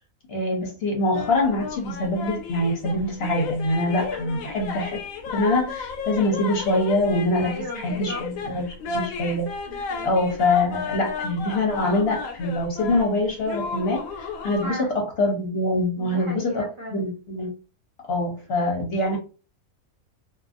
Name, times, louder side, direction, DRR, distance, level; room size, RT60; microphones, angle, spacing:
voice 1, 0.3-9.5 10.0-17.5 18.1-19.2, left 1 dB, 50° left, 0 dB, 1.0 m, -24 dB
sound 1, 1.1-14.7, left 4 dB, 80° left, 1.0 m, -33 dB
voice 2, 4.1-4.5 7.4-8.2 9.7-10.1 14.6-14.9 16.0-17.0, equal, 45° right, -2 dB, 0.9 m, -36 dB
2.5 x 2.5 x 2.5 m, 0.34 s
omnidirectional pair, 1.5 m